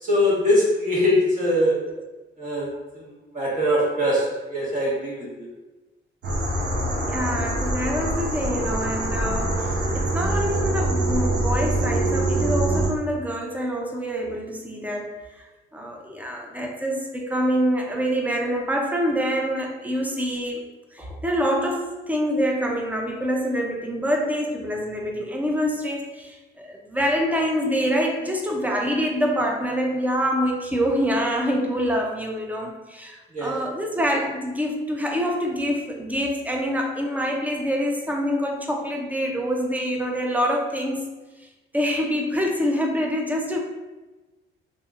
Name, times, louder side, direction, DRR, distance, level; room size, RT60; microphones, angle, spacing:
voice 1, 0.0-1.7 2.4-5.5 33.3-33.6, left 1 dB, 40° right, -6 dB, 1.2 m, -22 dB
sound 1, 6.2-12.9, right 1 dB, 65° right, 0.8 m, -24 dB
voice 2, 7.0-15.5 15.7-20.6 20.9-41.0 41.7-43.6, equal, 10° right, 0 dB, 0.5 m, -26 dB
2.8 x 2.5 x 2.4 m, 1.2 s
cardioid pair, 90°, 20 cm